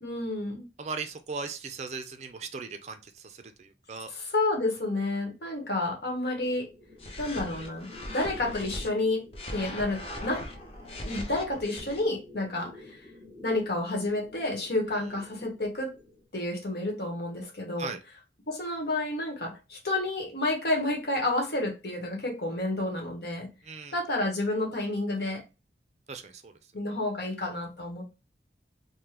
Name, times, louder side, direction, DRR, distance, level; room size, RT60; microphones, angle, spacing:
voice 1, 0.0-0.6 4.1-6.7 7.2-9.2 9.5-10.4 11.0-13.0 13.4-15.9 16.3-17.9 18.5-23.5 23.9-25.4 26.7-28.0, left 2 dB, 65° left, 1.1 m, -30 dB
voice 2, 0.8-4.1 17.8-18.0 23.6-24.0 26.1-26.6, right 4 dB, 40° right, 0.4 m, -38 dB
sound 1, 6.4-16.3, left 2 dB, 15° left, 1.2 m, -51 dB
sound 2, 7.0-8.9 9.3-12.0, left 1 dB, 35° left, 0.6 m, -39 dB
3.5 x 2.1 x 2.9 m
head